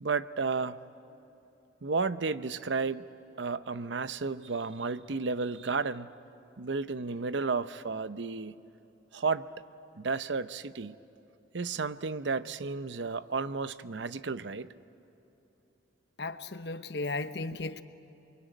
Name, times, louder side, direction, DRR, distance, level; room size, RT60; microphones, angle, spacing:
voice 1, 0.0-0.8 1.8-3.1 3.4-6.1 6.6-8.5 9.1-9.5 10.0-11.0 11.5-14.7, right 4 dB, 80° right, 14 dB, 0.7 m, -32 dB
voice 2, 16.2-17.8, left 3 dB, 65° left, 11 dB, 0.9 m, -35 dB
28.0 x 23.0 x 9.2 m, 2.9 s
head